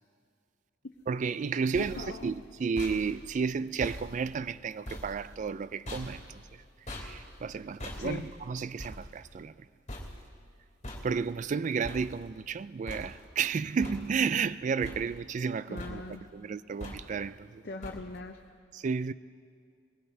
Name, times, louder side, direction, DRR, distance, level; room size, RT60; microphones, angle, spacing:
voice 1, 1.1-6.4 7.0-9.5 11.0-17.6 18.7-19.1, right 5 dB, 40° right, 0.3 m, -32 dB
sound 1, 1.4-12.6 12.9-13.5 13.8-14.5 14.8-15.5 15.8-16.3 16.8-17.3 17.8-18.4, left 1 dB, 35° left, 2.9 m, -44 dB
voice 2, 1.8-2.3 8.0-8.3 15.7-16.2 17.6-18.4, left 3 dB, 55° left, 0.7 m, -40 dB
22.0 x 21.5 x 2.7 m
head